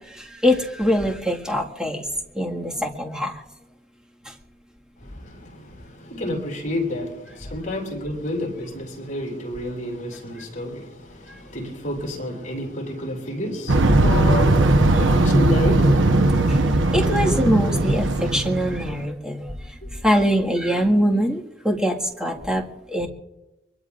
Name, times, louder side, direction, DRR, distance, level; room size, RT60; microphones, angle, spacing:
voice 1, 0.0-2.0 2.4-3.3 16.9-19.5 20.0-22.6 22.9-23.1, equal, 5° right, 1.8 m, -23 dB
voice 2, 5.0-17.0, left 1 dB, 40° left, 7.8 m, -30 dB
sound 1, 13.7-19.0, right 2 dB, 85° right, 1.0 m, -18 dB
24.5 x 22.5 x 2.5 m
head